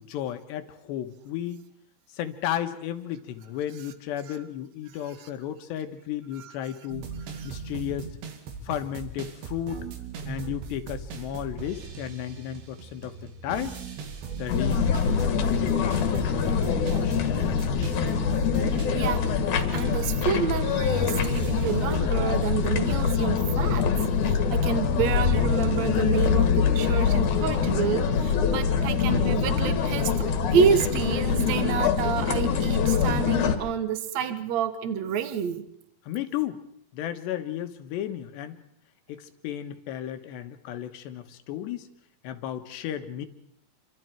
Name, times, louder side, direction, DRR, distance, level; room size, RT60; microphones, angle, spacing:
voice 1, 0.0-1.6 2.1-7.1 7.4-8.1 8.6-9.9 10.3-13.2 13.4-13.8 14.4-18.1 36.1-36.6 36.9-38.6 39.1-41.9 42.2-43.3, left 11 dB, 85° left, 3.5 m, -34 dB
sound 1, 6.9-22.0, right 5 dB, 85° right, 4.6 m, -39 dB
sound 2, 14.5-33.6, left 6 dB, 55° left, 2.8 m, -24 dB
voice 2, 18.9-19.3 19.7-23.9 24.2-35.7, right 7 dB, 60° right, 2.0 m, -28 dB
28.0 x 25.0 x 4.6 m
omnidirectional pair, 4.9 m